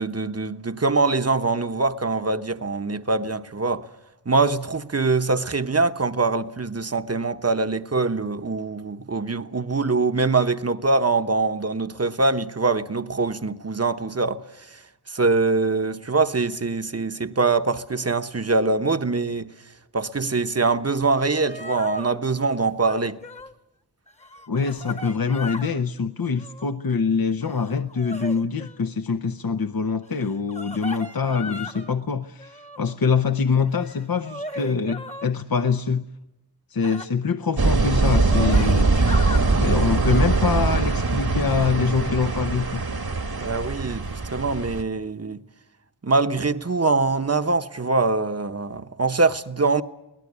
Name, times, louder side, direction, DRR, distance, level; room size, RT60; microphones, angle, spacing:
voice 1, 0.0-3.8 4.3-14.4 15.1-19.5 19.9-23.2 43.3-45.4 46.0-49.8, right 3 dB, 40° right, 1.0 m, -23 dB
sound 1, 21.1-21.2 21.4-22.2 22.8-23.5 24.1-25.8 26.2-26.7 27.4-28.8 30.2-31.9 32.4-33.0 33.6-35.3 36.8-37.1 37.7-37.8 38.1-39.4 40.0-40.2, left 1 dB, 15° left, 1.2 m, -37 dB
voice 2, 24.5-36.0 36.7-38.9 39.6-42.8, left 5 dB, 60° left, 0.8 m, -24 dB
sound 2, 37.6-44.8, right 3 dB, 65° right, 1.6 m, -22 dB
23.0 x 18.5 x 9.6 m
wide cardioid pair, 55°, 40 cm